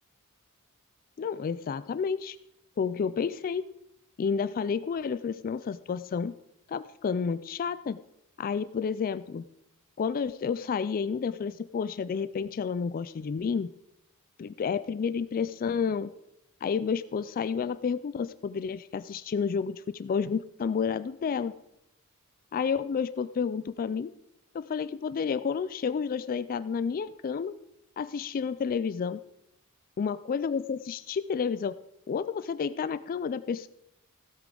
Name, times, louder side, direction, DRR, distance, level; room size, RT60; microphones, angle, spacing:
voice 1, 1.2-2.4 2.8-3.7 4.2-6.3 6.7-8.0 8.4-9.4 10.0-13.7 14.4-16.1 16.6-21.5 22.5-24.1 24.5-27.5 28.0-29.2 30.0-31.8 32.1-33.7, left 6 dB, 40° left, 15 dB, 0.3 m, -30 dB
16.0 x 8.3 x 3.8 m, 0.85 s
head